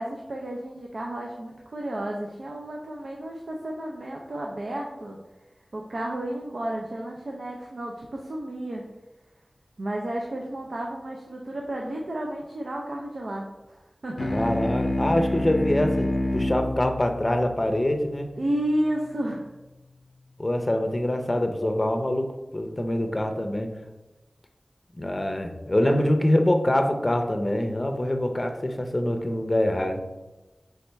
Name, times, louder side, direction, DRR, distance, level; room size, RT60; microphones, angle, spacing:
voice 1, 0.0-5.2 5.7-8.8 9.8-14.3 18.4-19.5 25.8-26.0, right 1 dB, 75° right, -1 dB, 0.5 m, -32 dB
sound 1, 14.2-19.0, left 1 dB, 80° left, 0.4 m, -29 dB
voice 2, 14.3-18.3 20.4-23.7 24.9-30.0, left 1 dB, 30° left, 5 dB, 0.5 m, -25 dB
4.1 x 3.4 x 3.4 m, 1.1 s
wide cardioid pair, 50°, 0 cm